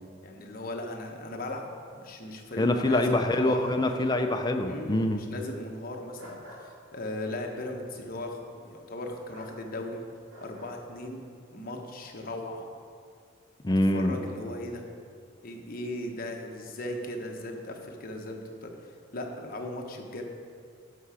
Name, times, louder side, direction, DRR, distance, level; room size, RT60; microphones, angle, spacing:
voice 1, 0.2-3.6 4.7-10.0 10.4-11.2 11.5-12.6 13.9-14.9 15.4-18.7 19.1-20.2, left 1 dB, 45° left, 2 dB, 1.0 m, -37 dB
voice 2, 2.6-5.2 13.6-14.2, left 1 dB, 20° left, 6 dB, 0.5 m, -25 dB
sound 1, 2.9-4.0 6.2-6.6 9.3-9.5 10.3-10.7, equal, 80° right, 2.3 m, -45 dB
11.0 x 5.9 x 4.9 m, 2.2 s
head